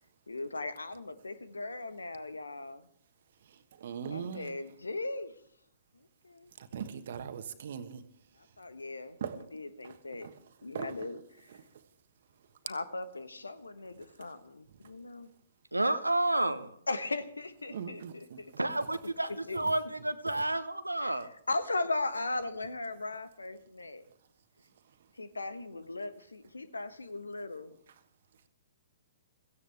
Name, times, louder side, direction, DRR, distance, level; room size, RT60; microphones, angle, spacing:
voice 1, 0.3-2.9 4.1-5.3 5.9-6.5 8.4-9.2 9.5-10.3 10.6-11.6 12.6-15.3 16.9-18.5 19.5-19.6 21.0-21.1 21.5-24.0 25.1-27.7, left 2 dB, 80° left, 1.2 m, -38 dB
voice 2, 3.8-4.5 6.6-8.0 9.2-9.4 10.2-10.3 10.7-10.9 17.7-18.4, right 7 dB, 55° right, 1.4 m, -39 dB
voice 3, 15.7-16.8 18.6-21.3, right 2 dB, 85° right, 1.0 m, -30 dB
17.0 x 15.5 x 3.5 m
figure-of-eight pair, 120°, 0 cm